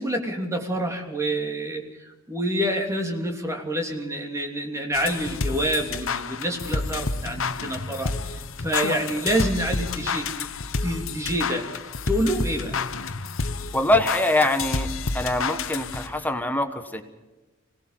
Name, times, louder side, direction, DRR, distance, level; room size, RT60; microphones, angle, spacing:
voice 1, 0.0-8.1 8.6-10.5 10.8-11.7 12.1-12.8, right 1 dB, 15° right, 2 dB, 3.0 m, -27 dB
sound 1, 4.9-16.3, left 4 dB, 65° left, 1.1 m, -30 dB
voice 2, 13.7-14.9 15.1-17.0, left 1 dB, 10° left, 7 dB, 1.3 m, -23 dB
25.5 x 18.5 x 5.8 m, 1.1 s
head